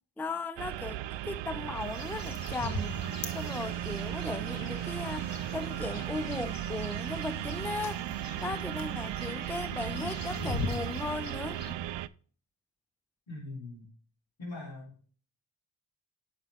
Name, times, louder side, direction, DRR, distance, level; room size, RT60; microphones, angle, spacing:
voice 1, 0.2-3.0 3.3-8.0 8.4-11.6, left 3 dB, 5° left, 0.4 m, -37 dB
sound 1, 0.6-12.1, right 12 dB, 65° right, 0.5 m, -36 dB
sound 2, 1.8-11.7, left 2 dB, 45° left, 1.7 m, -41 dB
sound 3, 2.2-8.0, left 4 dB, 85° left, 1.7 m, -54 dB
voice 2, 13.3-13.9 14.4-14.9, left 2 dB, 70° left, 4.0 m, -41 dB
8.8 x 5.9 x 3.4 m
supercardioid pair, 40°, 47 cm